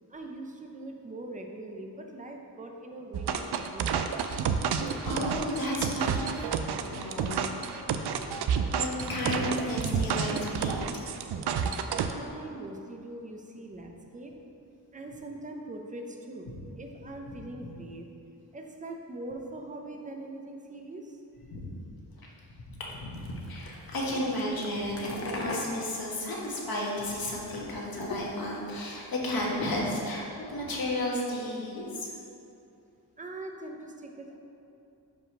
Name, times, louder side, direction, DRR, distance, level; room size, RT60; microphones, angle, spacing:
voice 1, 0.1-3.9 11.4-11.7 12.1-14.4 14.9-18.1 18.5-21.2 24.1-24.4 33.2-34.4, right 2 dB, 20° right, 2 dB, 0.7 m, -42 dB
sound 1, 3.1-12.1, right 7 dB, 75° right, 0.5 m, -30 dB
voice 2, 5.0-7.5 7.8-10.8 16.5-16.6 17.3-17.4 21.5-21.7 22.5-32.1, left 1 dB, 60° left, -4 dB, 1.6 m, -33 dB
sound 2, 23.1-30.2, left 2 dB, 35° left, 0.8 m, -41 dB
5.3 x 4.9 x 6.0 m, 2.7 s
wide cardioid pair, 120°, 39 cm